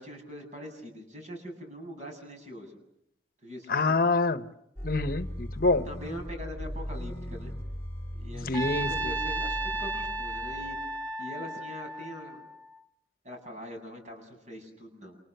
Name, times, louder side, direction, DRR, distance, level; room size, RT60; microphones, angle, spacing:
voice 1, 0.0-2.8 3.4-4.0 5.9-7.5 8.1-10.8 11.2-12.5 13.2-15.2, equal, 40° right, 3 dB, 7.6 m, -42 dB
voice 2, 3.7-4.5 4.8-5.9 8.4-8.9, left 3 dB, 50° left, 10 dB, 1.0 m, -26 dB
sound 1, 4.8-11.0, equal, 15° left, 3.3 m, -38 dB
Trumpet, 8.5-12.8, right 2 dB, 20° right, 2.1 m, -34 dB
29.0 x 29.0 x 6.8 m, 0.78 s
head